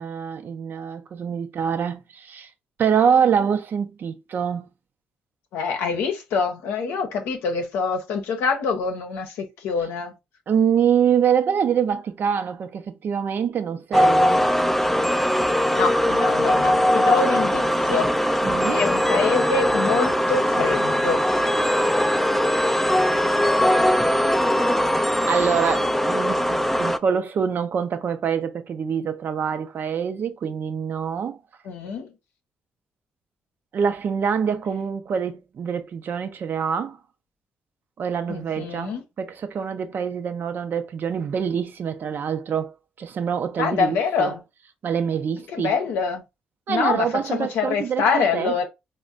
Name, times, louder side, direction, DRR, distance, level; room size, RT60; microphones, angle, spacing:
voice 1, 0.0-2.5 2.8-4.7 10.5-14.5 18.4-18.9 25.3-31.4 33.7-37.0 38.0-44.4 44.8-45.8 46.7-48.5, right 7 dB, 60° right, 0.5 m, -25 dB
voice 2, 5.5-10.1 15.7-18.1 18.7-21.2 31.7-32.1 38.3-39.0 43.6-44.4 45.5-46.2 46.7-48.7, left 5 dB, 85° left, 0.7 m, -25 dB
sound 1, 13.9-27.0, equal, 5° left, 0.3 m, -20 dB
4.1 x 2.1 x 2.4 m
supercardioid pair, 55°, 4 cm